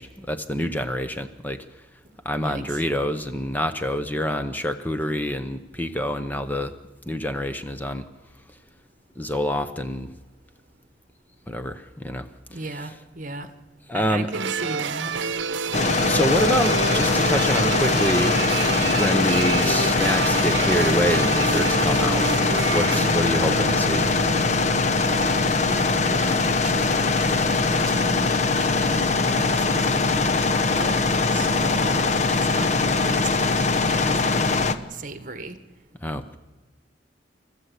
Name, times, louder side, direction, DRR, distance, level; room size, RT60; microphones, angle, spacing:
voice 1, 0.0-1.9 2.2-6.7 7.0-8.0 8.5-8.6 9.2-10.1 11.5-12.6 13.9-14.3 16.1-18.5 18.9-22.2 22.7-24.1 36.0-36.4, equal, 10° left, 9 dB, 0.8 m, -26 dB
voice 2, 2.4-2.8 12.5-13.5 13.9-15.4 25.0-31.0 31.3-34.6 34.9-35.6, right 2 dB, 45° right, 10 dB, 1.5 m, -35 dB
sound 1, 14.3-25.0, right 5 dB, 85° right, 0.8 m, -28 dB
sound 2, 15.7-34.8, left 3 dB, 40° left, 0.9 m, -22 dB
28.5 x 14.0 x 8.2 m, 1.2 s
head